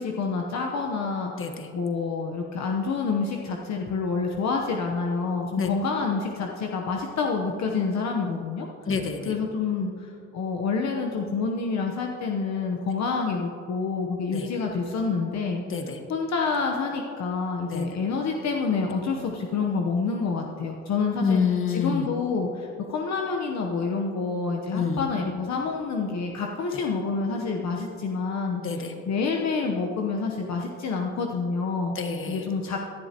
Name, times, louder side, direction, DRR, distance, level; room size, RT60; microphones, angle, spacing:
voice 1, 0.0-8.7 9.3-15.6 16.1-21.4 21.7-31.9 32.3-32.8, left 4 dB, 65° left, 1 dB, 1.0 m, -28 dB
voice 2, 8.8-9.3 14.3-14.5 15.7-16.0 17.7-17.9 21.2-22.0 24.7-25.0 26.7-26.8 28.6-28.9 31.9-32.4, left 5 dB, 45° left, 5 dB, 1.5 m, -27 dB
17.5 x 11.5 x 3.0 m, 2.5 s
cardioid pair, 90°, 30 cm